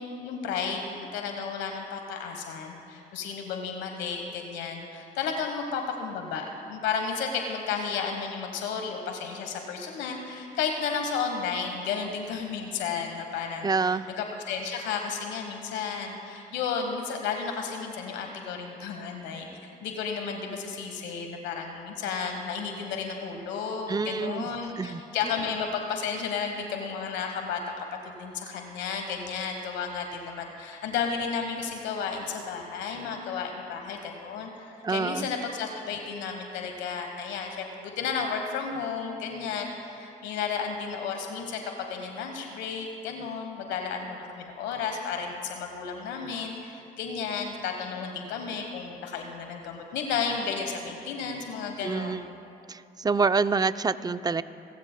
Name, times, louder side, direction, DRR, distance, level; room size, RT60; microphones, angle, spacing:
voice 1, 0.0-19.5 19.8-52.3, left 6 dB, 85° left, 3 dB, 1.2 m, -33 dB
voice 2, 13.6-14.1 23.9-24.4 24.8-25.0 34.8-35.3 51.8-52.2 52.7-54.4, right 4 dB, 20° right, 13 dB, 0.5 m, -26 dB
26.5 x 15.0 x 2.2 m, 2.7 s
supercardioid pair, 60°, 18 cm